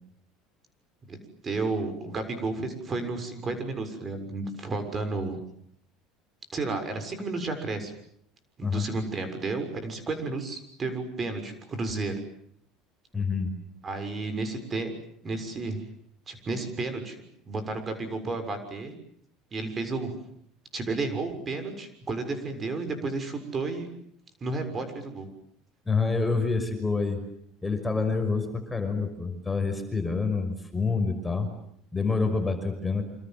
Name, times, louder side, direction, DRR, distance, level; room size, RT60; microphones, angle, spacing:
voice 1, 1.4-5.4 6.5-7.9 8.6-12.1 13.8-14.9 15.2-15.8 16.3-17.2 17.4-18.9 19.5-20.2 20.7-23.9 24.4-25.3, right 3 dB, 30° right, 9 dB, 6.8 m, -32 dB
voice 2, 13.1-13.5 25.9-27.2 27.6-31.5 31.9-33.0, left 4 dB, 10° left, 6 dB, 5.8 m, -27 dB
28.0 x 27.0 x 7.8 m, 0.69 s
supercardioid pair, 115°, 0 cm